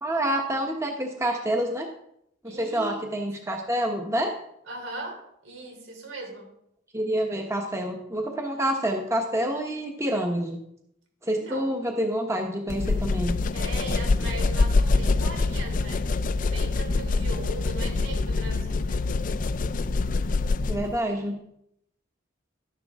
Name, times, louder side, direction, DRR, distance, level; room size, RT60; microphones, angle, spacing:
voice 1, 0.0-1.9 2.4-4.3 6.9-10.6 11.2-13.4 20.7-21.4, right 1 dB, 15° right, 2 dB, 1.1 m, -27 dB
voice 2, 2.4-3.0 4.7-6.5 11.3-11.7 13.5-16.1 16.5-19.0, right 2 dB, 80° right, 2 dB, 3.5 m, -39 dB
sound 1, 12.7-21.0, left 3 dB, 40° left, 0.4 m, -25 dB
12.5 x 10.5 x 3.6 m, 0.75 s
head